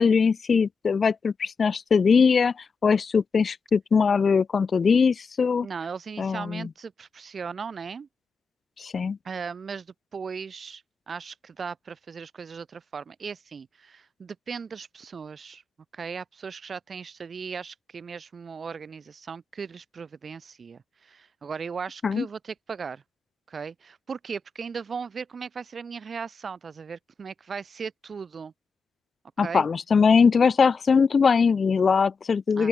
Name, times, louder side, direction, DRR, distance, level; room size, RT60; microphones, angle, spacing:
voice 1, 0.0-2.5 2.8-5.7 6.2-6.7 8.8-9.2 22.0-22.3 29.4-32.7, left 5 dB, 40° left, 1.1 m, -21 dB
voice 2, 5.6-8.1 9.2-15.6 15.9-23.0 23.5-28.5 29.4-29.7 32.6-32.7, right 6 dB, 40° right, 3.1 m, -37 dB
open air
cardioid pair, 90°, 0 cm